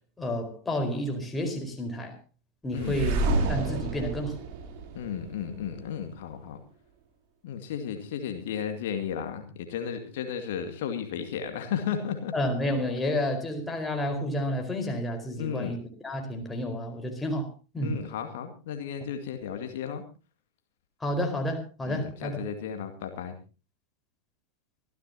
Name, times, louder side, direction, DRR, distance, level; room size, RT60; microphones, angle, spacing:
voice 1, 0.2-2.1 2.6-3.2 3.5-4.4 12.3-17.5 17.7-18.0 21.0-22.4, left 1 dB, 10° left, 4.6 m, -30 dB
voice 2, 2.7-3.1 4.9-6.6 7.4-12.3 15.4-15.8 17.8-20.0 21.9-23.3, left 8 dB, 55° left, 2.2 m, -34 dB
sound 1, 2.7-5.7, right 2 dB, 45° right, 3.3 m, -29 dB
25.5 x 14.5 x 2.8 m
figure-of-eight pair, 90°, 0 cm